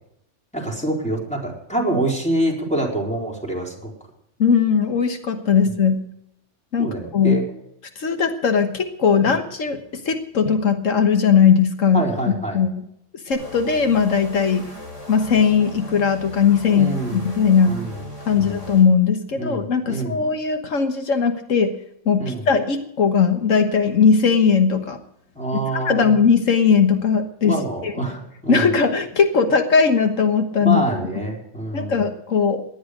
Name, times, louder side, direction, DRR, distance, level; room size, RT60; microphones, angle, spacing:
voice 1, 0.5-3.9 6.8-7.4 9.2-9.3 11.9-12.6 16.7-17.2 17.6-18.0 18.4-18.6 19.3-20.2 22.2-22.5 25.4-26.1 27.4-28.7 30.6-32.0, right 1 dB, 5° left, -2 dB, 4.3 m, -26 dB
voice 2, 4.4-6.0 6.7-7.4 8.0-12.7 13.3-14.7 15.1-17.8 18.3-21.7 22.1-25.0 25.7-27.6 27.8-27.9 28.5-30.8 31.7-32.6, left 6 dB, 85° left, 7 dB, 1.7 m, -19 dB
sound 1, 13.3-18.8, left 1 dB, 70° left, 5.9 m, -38 dB
18.5 x 11.0 x 5.0 m, 0.78 s
omnidirectional pair, 1.3 m